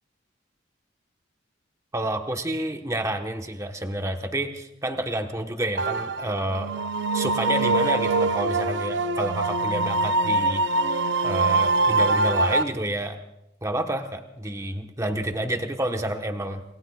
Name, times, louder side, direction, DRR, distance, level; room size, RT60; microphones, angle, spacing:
voice 1, 1.9-6.7 7.1-13.2 13.6-16.6, right 1 dB, 15° right, 4 dB, 1.2 m, -29 dB
sound 1, 5.8-12.6, right 3 dB, 65° right, 0.7 m, -23 dB
27.5 x 21.0 x 2.4 m, 0.85 s
head